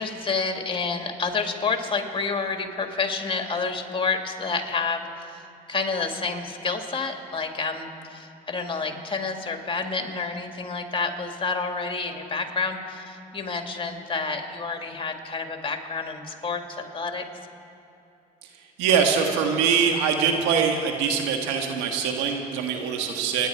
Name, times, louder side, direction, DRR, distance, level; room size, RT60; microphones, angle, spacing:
voice 1, 0.0-17.2, left 4 dB, 30° left, 4 dB, 2.0 m, -29 dB
voice 2, 18.8-23.5, right 6 dB, 85° right, 3 dB, 1.5 m, -23 dB
26.5 x 10.5 x 4.6 m, 2.7 s
supercardioid pair, 70°, 18 cm